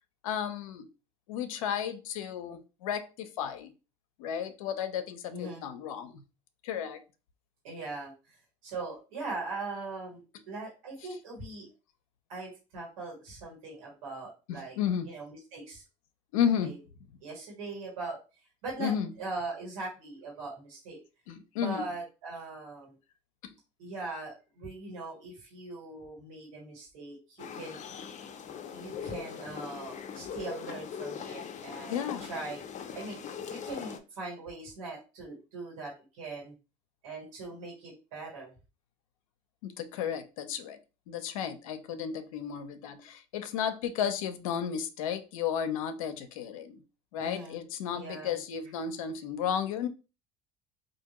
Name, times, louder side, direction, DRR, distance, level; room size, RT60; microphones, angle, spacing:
voice 1, 0.2-0.9 1.3-3.7 4.2-6.2 6.6-7.0 14.5-15.1 16.3-16.7 18.8-19.1 21.3-21.8 23.4-23.5 31.9-32.3 39.6-40.8 41.1-46.8 47.1-49.9, left 8 dB, 90° left, 0.5 m, -33 dB
voice 2, 5.3-5.6 7.6-8.4 8.6-11.7 12.3-14.8 15.0-15.8 16.6-16.8 17.2-18.2 18.6-21.0 21.5-22.9 23.8-27.8 28.7-32.6 32.9-33.2 33.5-36.5 37.0-38.5 47.2-47.7 47.9-48.4, right 3 dB, 90° right, 1.7 m, -40 dB
sound 1, 27.4-34.0, left 7 dB, 45° left, 0.6 m, -41 dB
3.4 x 2.6 x 2.9 m
hypercardioid pair, 75°, 17 cm